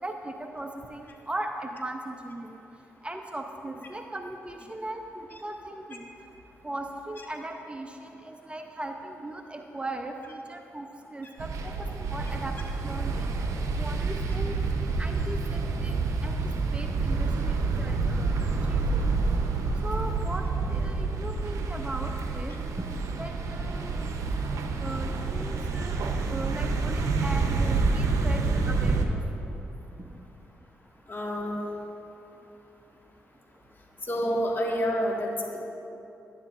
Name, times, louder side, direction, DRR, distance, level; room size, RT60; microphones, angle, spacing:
voice 1, 0.0-2.6 3.0-5.0 5.4-6.0 6.6-12.5 12.8-13.2 13.8-14.5 15.0-15.9 16.2-16.4 16.7-18.4 18.7-19.0 19.8-20.4 20.7-22.5 23.1-24.0 24.8-26.0 26.3-29.2 30.0-30.1, right 1 dB, 20° right, 4 dB, 0.6 m, -38 dB
sound 1, 11.4-29.1, right 3 dB, 70° right, 0.7 m, -28 dB
voice 2, 31.1-31.6 34.0-35.6, equal, 35° left, -1 dB, 1.5 m, -28 dB
11.0 x 9.5 x 2.5 m, 3.0 s
supercardioid pair, 50°, 6 cm